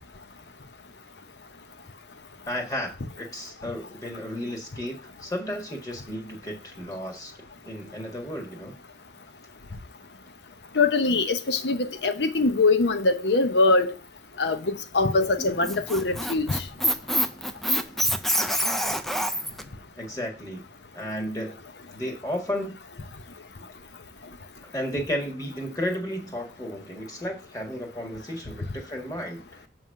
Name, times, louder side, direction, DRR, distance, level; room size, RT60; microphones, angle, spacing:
voice 1, 2.4-2.9 3.2-7.3 7.6-8.7 19.9-20.6 20.9-21.6 21.9-22.7 24.7-29.7, equal, 20° left, 1.7 m, -33 dB
voice 2, 10.7-13.9 14.4-16.6, left 3 dB, 75° left, 0.9 m, -23 dB
Squeak, 15.4-19.6, equal, ahead, 0.4 m, -26 dB
7.5 x 3.2 x 6.3 m
head